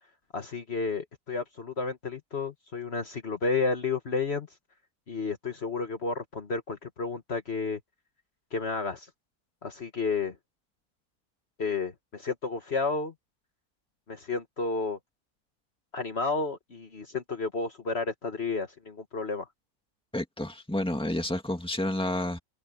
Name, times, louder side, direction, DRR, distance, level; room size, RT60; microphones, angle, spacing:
voice 1, 0.3-4.5 5.1-7.8 8.5-9.1 9.6-10.3 11.6-13.1 14.1-15.0 15.9-19.5, left 4 dB, 50° left, 1.7 m, -31 dB
voice 2, 20.1-22.4, left 1 dB, 5° left, 2.2 m, -30 dB
open air
omnidirectional pair, 1.4 m